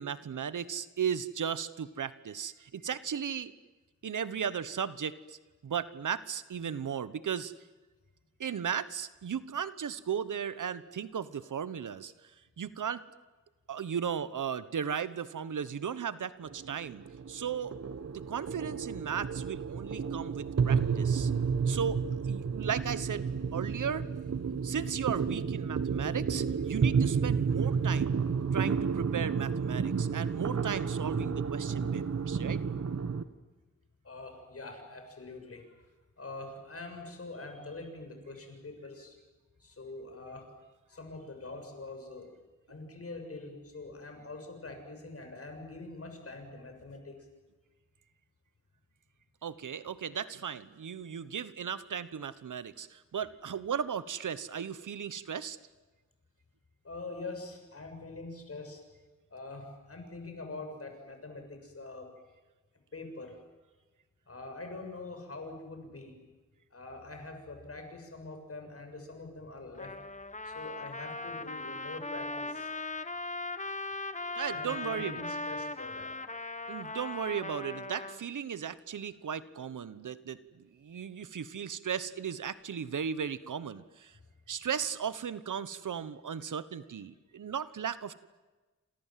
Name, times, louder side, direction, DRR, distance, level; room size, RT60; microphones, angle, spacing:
voice 1, 0.0-3.5 4.0-5.4 5.6-7.5 8.4-12.1 12.6-13.0 13.7-17.7 18.3-21.3 21.7-23.3 23.5-24.1 24.6-28.1 28.5-32.6 49.4-55.6 74.4-75.2 76.7-84.1 84.5-88.1, right 7 dB, 80° right, 14 dB, 1.2 m, -36 dB
sound 1, 16.4-33.2, right 6 dB, 55° right, 1.4 m, -31 dB
voice 2, 34.0-35.9 36.2-39.2 39.6-40.5 40.9-42.3 42.7-47.3 56.8-58.8 59.3-62.1 62.9-63.4 64.3-66.2 66.7-69.9 70.4-72.7 74.5-76.1, left 2 dB, 50° left, 5 dB, 7.2 m, -44 dB
Trumpet, 69.8-78.2, left 3 dB, 25° left, 1.3 m, -39 dB
28.5 x 27.0 x 7.6 m, 1.2 s
wide cardioid pair, 100°, 30 cm